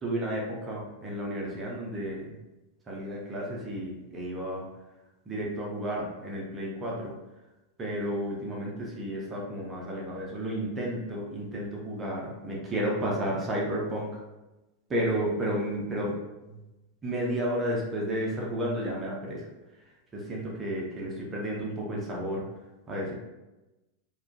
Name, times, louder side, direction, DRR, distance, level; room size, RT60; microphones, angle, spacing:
voice 1, 0.0-2.3 2.9-4.7 5.3-7.2 7.8-14.2 14.9-16.2 16.5-16.6 17.0-19.4 20.1-22.4 22.9-23.1, right 1 dB, 20° right, -3 dB, 0.5 m, -32 dB
2.3 x 2.1 x 2.5 m, 1.0 s
figure-of-eight pair, 90°, 0 cm